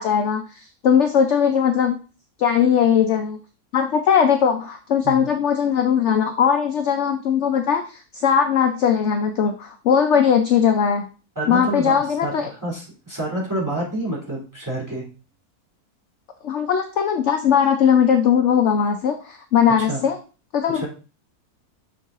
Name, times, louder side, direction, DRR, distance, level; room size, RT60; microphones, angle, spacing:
voice 1, 0.0-2.0 2.4-3.4 3.7-11.1 11.5-12.5 16.4-20.2 20.5-20.9, left 7 dB, 60° left, 6 dB, 0.8 m, -19 dB
voice 2, 11.4-15.1 19.8-20.0 20.7-20.9, right 1 dB, 10° right, -5 dB, 2.4 m, -28 dB
6.8 x 4.8 x 3.6 m, 0.35 s
omnidirectional pair, 1.6 m